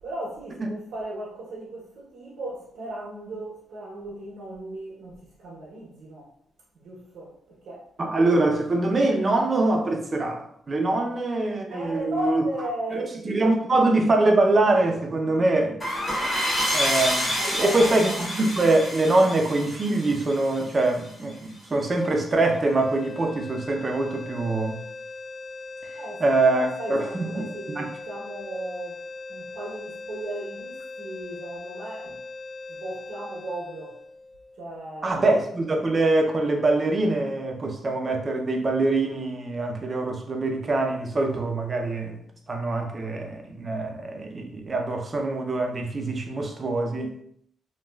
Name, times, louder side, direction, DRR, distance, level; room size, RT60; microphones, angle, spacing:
voice 1, 0.0-6.3 6.7-7.9 11.7-13.1 17.4-17.9 25.9-29.0 29.3-32.2 32.7-34.0 34.6-35.2, right 1 dB, 80° right, 0.7 m, -36 dB
voice 2, 8.0-12.4 12.9-15.8 16.7-17.3 17.6-24.8 26.2-27.9 35.0-42.2 42.5-47.2, right 2 dB, 35° right, 0.5 m, -24 dB
sound 1, 15.8-21.1, equal, 30° left, 0.9 m, -28 dB
sound 2, 22.6-34.8, left 3 dB, 45° left, 0.4 m, -40 dB
3.0 x 2.2 x 2.2 m
cardioid pair, 100°, 0 cm